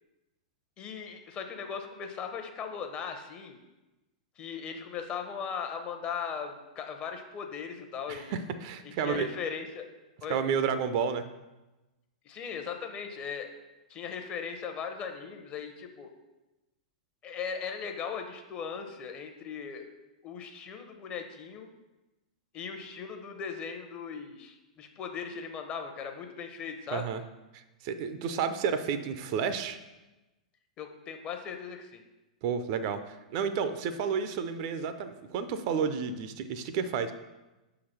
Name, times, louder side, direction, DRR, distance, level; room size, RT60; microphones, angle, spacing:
voice 1, 0.8-3.6 4.4-8.4 9.0-9.8 10.2-10.4 12.2-13.5 13.9-16.1 17.2-19.9 20.2-21.7 22.5-27.0 30.8-32.0, left 6 dB, 30° left, 5 dB, 0.9 m, -38 dB
voice 2, 8.1-9.3 10.3-11.3 26.9-27.2 27.5-29.8 32.4-37.1, right 6 dB, 45° right, 11 dB, 0.5 m, -31 dB
6.0 x 3.9 x 5.9 m, 1.1 s
figure-of-eight pair, 100°, 4 cm